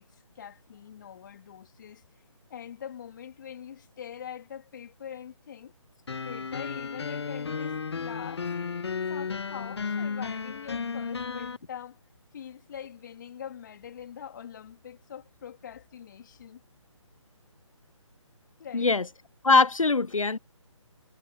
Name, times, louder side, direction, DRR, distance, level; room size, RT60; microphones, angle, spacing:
voice 1, 0.0-2.0 2.5-5.7 6.2-8.5 9.1-12.0 12.3-16.6 18.6-19.0, left 9 dB, 35° left, 2.9 m, -43 dB
sound 1, 6.1-11.6, left 5 dB, 55° left, 1.2 m, -33 dB
voice 2, 18.7-19.0 19.4-20.4, left 3 dB, 85° left, 0.6 m, -22 dB
figure-of-eight pair, 145°, 17 cm